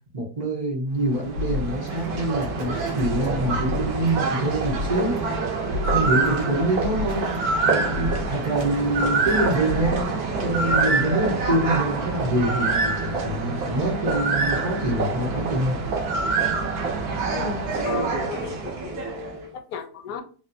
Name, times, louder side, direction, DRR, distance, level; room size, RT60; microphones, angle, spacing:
voice 1, 0.1-5.2 5.9-7.3 7.6-15.8, right 1 dB, 45° right, -4 dB, 0.5 m, -25 dB
sound 1, 1.0-19.4, right 4 dB, 65° right, 1.1 m, -26 dB
sound 2, 1.3-5.3 5.7-10.1, left 3 dB, 85° right, 1.5 m, -33 dB
voice 2, 17.3-20.2, left 7 dB, 70° left, 6 dB, 1.1 m, -35 dB
3.3 x 2.5 x 2.6 m, 0.39 s
omnidirectional pair, 1.8 m